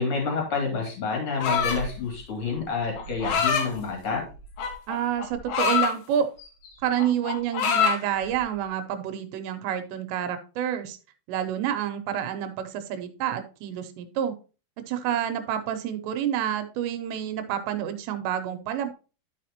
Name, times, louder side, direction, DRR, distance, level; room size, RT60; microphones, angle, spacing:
voice 1, 0.0-4.2, left 4 dB, 35° left, 0 dB, 2.9 m, -28 dB
sound 1, 1.4-1.9 3.0-3.7 4.6-5.9 6.4-6.7 6.9-8.0, left 6 dB, 80° left, 3.4 m, -24 dB
voice 2, 4.9-6.3 6.8-11.0 11.3-14.3 14.9-18.9, right 10 dB, 90° right, 8 dB, 2.9 m, -28 dB
12.0 x 4.9 x 2.9 m, 0.33 s
omnidirectional pair, 5.0 m